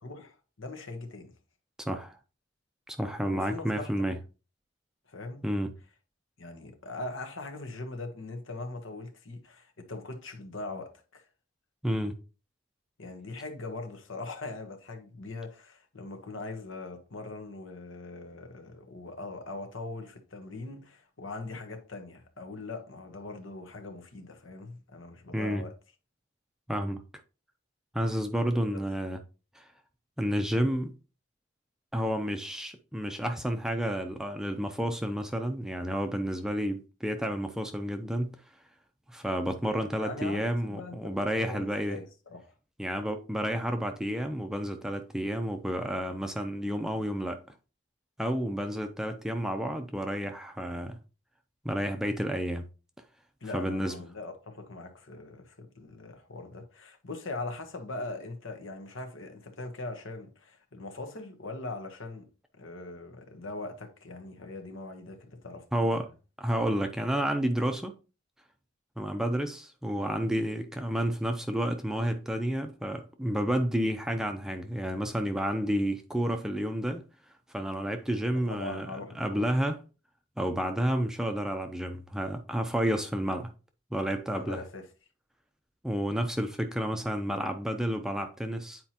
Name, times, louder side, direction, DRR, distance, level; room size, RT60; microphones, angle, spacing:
voice 1, 0.0-1.3 3.2-3.9 5.1-5.5 6.4-11.2 13.0-25.7 28.7-28.8 39.7-42.5 53.4-62.3 62.5-66.1 78.3-79.5 84.3-84.9, left 2 dB, 75° left, 1.2 m, -41 dB
voice 2, 1.8-2.2 2.9-4.2 5.4-5.7 11.8-12.1 25.3-25.6 26.7-27.0 27.9-29.2 29.6-29.7 30.2-31.0 31.9-38.4 39.1-42.0 42.8-47.4 48.2-51.0 51.6-52.7 53.5-53.9 65.7-66.1 66.4-67.9 69.0-77.0 77.5-78.9 79.2-79.8 80.4-83.5 83.9-84.6 85.8-88.8, equal, 5° right, 0.5 m, -30 dB
9.4 x 4.4 x 2.9 m
head